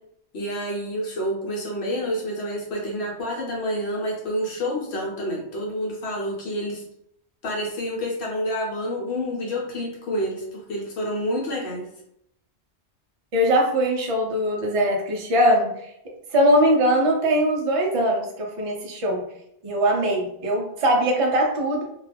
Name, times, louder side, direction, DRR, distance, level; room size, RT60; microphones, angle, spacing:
voice 1, 0.3-6.8 7.4-11.9, equal, 70° left, -2 dB, 1.0 m, -28 dB
voice 2, 13.3-15.7 16.3-19.2 19.6-21.8, equal, 50° right, 0 dB, 0.4 m, -21 dB
2.3 x 2.3 x 3.3 m, 0.74 s
omnidirectional pair, 1.2 m